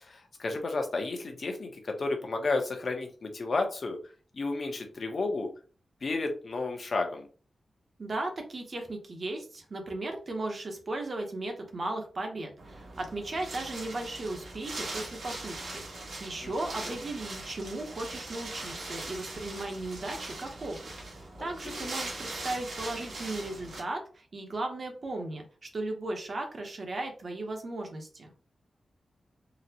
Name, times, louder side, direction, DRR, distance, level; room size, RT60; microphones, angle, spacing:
voice 1, 0.0-4.0 4.3-5.5 6.0-7.3 16.4-16.5 21.4-21.9, left 3 dB, 45° left, 4 dB, 0.7 m, -32 dB
voice 2, 8.0-20.8 21.1-25.4 25.7-28.3, right 2 dB, 40° right, 3 dB, 0.8 m, -36 dB
Wind, 12.6-23.8, right 2 dB, 75° right, 1.3 m, -41 dB
3.9 x 2.1 x 2.8 m, 0.37 s
wide cardioid pair, 160°, 0 cm